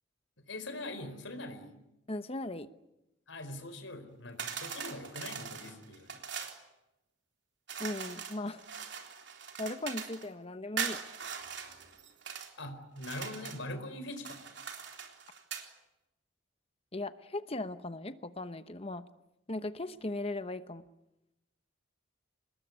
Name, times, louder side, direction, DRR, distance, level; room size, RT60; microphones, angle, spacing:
voice 1, 0.4-1.7 3.3-6.2 12.6-14.4, left 1 dB, 75° left, 9 dB, 4.5 m, -42 dB
voice 2, 2.1-2.7 7.8-8.7 9.6-11.0 16.9-19.0 19.5-20.8, left 2 dB, 30° left, 11 dB, 0.9 m, -38 dB
sound 1, 4.4-6.6 7.7-10.3 10.8-12.5 13.0-13.7 14.2-15.7, right 7 dB, 65° right, 3.7 m, -41 dB
27.0 x 21.0 x 9.6 m, 0.91 s
head